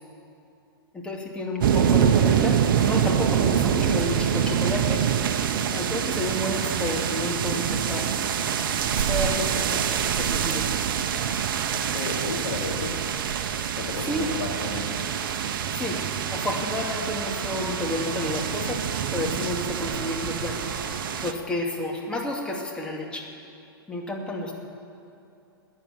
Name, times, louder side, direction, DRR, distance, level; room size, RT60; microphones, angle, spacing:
voice 1, 0.9-5.0 5.7-8.2 9.1-9.8 10.2-10.7 14.1-14.2 15.7-16.0 16.3-18.8 19.1-20.6 21.2-23.3 23.9-24.5, left 1 dB, 10° left, -1 dB, 2.5 m, -30 dB
sound 1, 1.6-21.3, right 8 dB, 60° right, 0.9 m, -25 dB
voice 2, 11.7-12.9 13.8-15.0, left 4 dB, 65° left, -1 dB, 3.2 m, -34 dB
sound 2, 15.8-21.1, left 4 dB, 25° left, 3.8 m, -45 dB
15.0 x 10.0 x 9.3 m, 2.7 s
hypercardioid pair, 115°, 13 cm